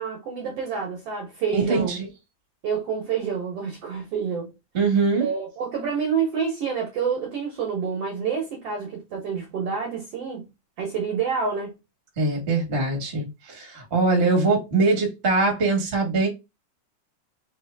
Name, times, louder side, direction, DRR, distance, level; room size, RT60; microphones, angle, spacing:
voice 1, 0.0-2.0 2.6-4.5 5.2-10.5 10.8-11.7, right 6 dB, 60° right, 1.8 m, -28 dB
voice 2, 1.5-2.1 4.7-5.3 12.2-16.3, right 3 dB, 30° right, 1.2 m, -22 dB
4.8 x 3.1 x 3.4 m
omnidirectional pair, 3.8 m